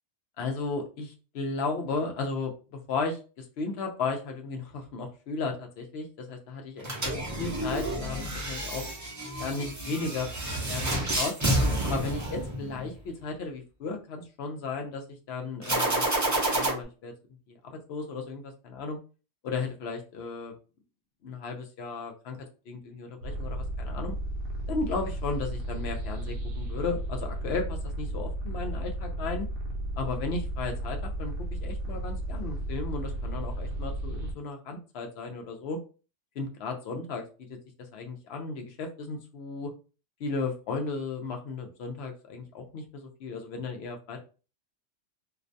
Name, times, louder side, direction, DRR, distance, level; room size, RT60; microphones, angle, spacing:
voice 1, 0.4-7.1 7.4-8.8 9.4-10.3 10.7-11.3 11.8-16.0 16.5-17.1 17.5-19.0 19.4-20.5 21.2-22.4 22.7-24.1 24.7-29.5 30.0-35.8 36.4-37.2 37.5-39.7 40.2-44.2, left 4 dB, 65° left, 3 dB, 0.7 m, -35 dB
sound 1, 6.8-13.0 15.6-16.7, right 1 dB, 25° right, 0.4 m, -29 dB
sound 2, 23.2-34.3, right 1 dB, 55° right, 0.7 m, -34 dB
2.5 x 2.1 x 2.5 m, 0.34 s
omnidirectional pair, 1.3 m